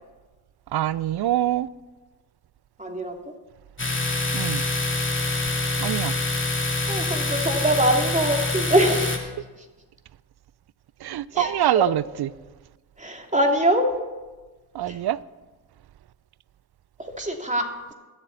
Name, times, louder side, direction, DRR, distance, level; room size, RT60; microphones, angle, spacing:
voice 1, 0.7-1.7 4.3-4.6 5.8-6.1 11.0-12.3 14.7-15.2, right 13 dB, 55° right, 0.6 m, -24 dB
voice 2, 2.8-3.3 6.9-9.3 9.6-9.7 11.3-11.8 13.0-13.8 14.8-15.0 17.0-17.9, right 1 dB, 15° right, 2.9 m, -24 dB
Domestic sounds home sounds, 3.8-9.2, left 2 dB, 25° left, 2.7 m, -25 dB
22.5 x 7.7 x 4.1 m
supercardioid pair, 45°, 46 cm